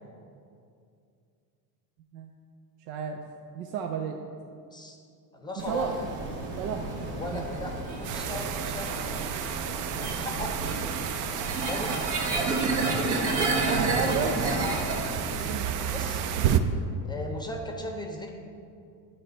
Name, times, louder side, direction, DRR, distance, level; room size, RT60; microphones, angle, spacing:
voice 1, 2.9-3.2 3.5-4.2 5.7-5.9 6.6-6.9 7.3-7.4 11.9-12.7 13.7-14.5 15.3-15.6, right 7 dB, 85° right, 3 dB, 0.7 m, -33 dB
voice 2, 5.3-5.9 7.2-9.3 9.9-11.0 11.6-12.0 14.3-14.6 15.9-16.3 17.0-18.3, left 1 dB, 10° left, 2 dB, 0.6 m, -37 dB
sound 1, 5.6-15.4, right 2 dB, 65° right, 1.5 m, -30 dB
sound 2, 8.0-16.6, right 9 dB, 45° right, 0.4 m, -32 dB
9.9 x 3.4 x 5.4 m, 2.4 s
supercardioid pair, 120°, 48 cm